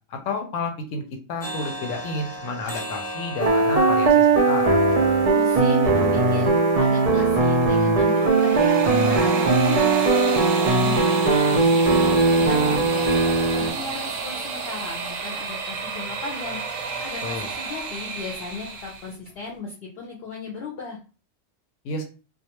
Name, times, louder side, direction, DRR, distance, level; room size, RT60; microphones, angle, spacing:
voice 1, 0.1-4.8 17.2-17.5 21.8-22.0, left 3 dB, 90° left, 3 dB, 0.9 m, -31 dB
sound 1, 1.4-9.2 9.7-9.8 10.2-10.3 10.8-10.9 11.3-11.4 11.8-11.9 12.3-12.4 12.9-13.0 13.4-13.5 14.0-14.1 14.4-14.5 15.0-15.1 15.5-15.6 16.1-16.2 16.6-16.7 17.1-17.2 17.6-17.7 18.1-18.2 18.7-18.8 19.3-19.4, right 1 dB, 15° left, 0.7 m, -39 dB
sound 2, 3.4-13.7, right 3 dB, 55° right, 0.4 m, -19 dB
voice 2, 5.1-11.9 12.2-21.0, left 4 dB, 65° left, 0 dB, 0.7 m, -36 dB
sound 3, 8.1-19.1, right 5 dB, 85° right, 1.0 m, -31 dB
2.3 x 2.2 x 2.8 m, 0.35 s
omnidirectional pair, 1.3 m